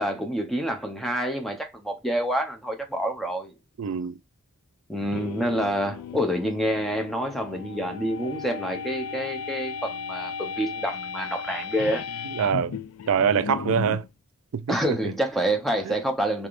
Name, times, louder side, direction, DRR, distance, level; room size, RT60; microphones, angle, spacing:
voice 1, 0.0-3.5 4.9-12.0 14.7-16.5, equal, ahead, 0.6 m, -27 dB
voice 2, 3.8-4.2 12.3-12.8 13.1-14.1 14.5-15.1 15.9-16.0, right 7 dB, 75° right, 0.3 m, -25 dB
sound 1, 4.9-14.1, left 6 dB, 80° left, 0.4 m, -35 dB
3.4 x 3.3 x 2.4 m
head